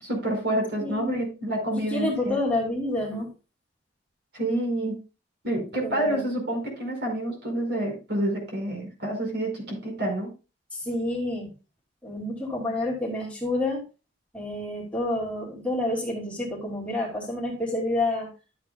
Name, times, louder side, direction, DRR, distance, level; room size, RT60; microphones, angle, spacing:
voice 1, 0.0-2.4 4.3-5.0 5.4-10.3, right 1 dB, 60° right, 1 dB, 4.9 m, -28 dB
voice 2, 0.8-1.2 1.8-3.3 5.8-6.2 10.7-11.5 12.0-13.8 14.3-18.3, left 1 dB, 5° left, -4 dB, 2.6 m, -28 dB
12.0 x 8.2 x 2.3 m, 0.31 s
head